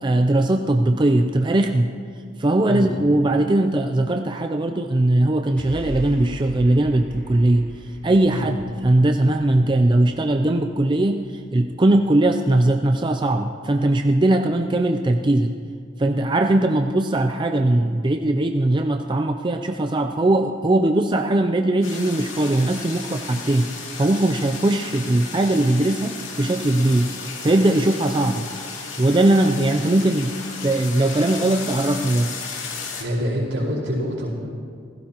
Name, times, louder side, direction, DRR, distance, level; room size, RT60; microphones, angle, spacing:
voice 1, 0.0-1.9 2.4-7.7 8.0-15.5 16.0-23.7 24.0-27.1 27.4-28.4 29.0-30.3 30.6-32.3, right 1 dB, 25° right, 5 dB, 0.5 m, -20 dB
sound 1, 5.6-12.0, equal, 5° left, 3.2 m, -40 dB
sound 2, 21.8-33.0, left 5 dB, 85° left, 2.5 m, -34 dB
voice 2, 33.0-34.3, equal, 75° right, -4 dB, 4.6 m, -25 dB
27.5 x 16.0 x 3.0 m, 2.2 s
head